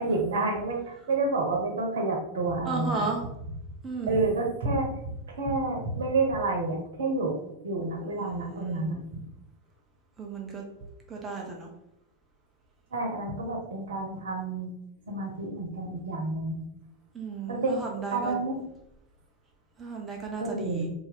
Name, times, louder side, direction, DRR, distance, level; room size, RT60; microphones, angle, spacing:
voice 1, 0.0-3.1 4.1-4.9 5.4-7.4 7.6-9.2 12.9-14.7 15.1-16.6 17.5-17.8 18.1-18.6 20.4-20.9, right 3 dB, 60° right, 1 dB, 1.1 m, -29 dB
voice 2, 2.6-3.2 3.8-4.3 8.2-8.8 10.2-10.6 11.1-11.7 17.1-18.4 19.8-20.9, right 4 dB, 20° right, 0 dB, 0.8 m, -34 dB
4.1 x 2.8 x 4.2 m, 0.82 s
figure-of-eight pair, 90°, 0 cm